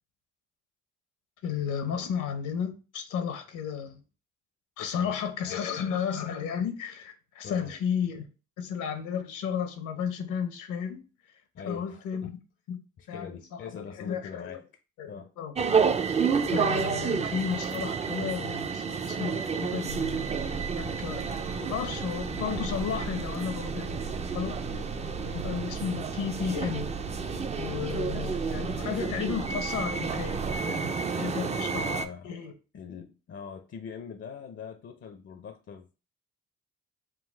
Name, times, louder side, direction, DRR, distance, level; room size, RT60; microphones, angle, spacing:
voice 1, 1.4-4.0 4.8-8.3 8.6-11.0 11.6-12.3 12.7-12.8 13.1-14.6 15.0-15.5 16.5-20.4 20.7-21.3 21.6-24.0 24.3-24.6 25.2-26.9 27.6-32.5, left 7 dB, 80° left, 0.9 m, -33 dB
voice 2, 4.8-5.6 7.4-7.7 11.5-12.3 13.0-14.6 15.1-15.3 24.7-24.9 27.9-28.5 31.2-32.4 32.7-36.0, left 6 dB, 40° left, 0.5 m, -43 dB
sound 1, 15.5-32.0, right 5 dB, 25° right, 0.4 m, -31 dB
sound 2, 19.9-30.6, right 4 dB, 85° right, 1.0 m, -39 dB
3.9 x 2.3 x 4.4 m
cardioid pair, 90°, 30 cm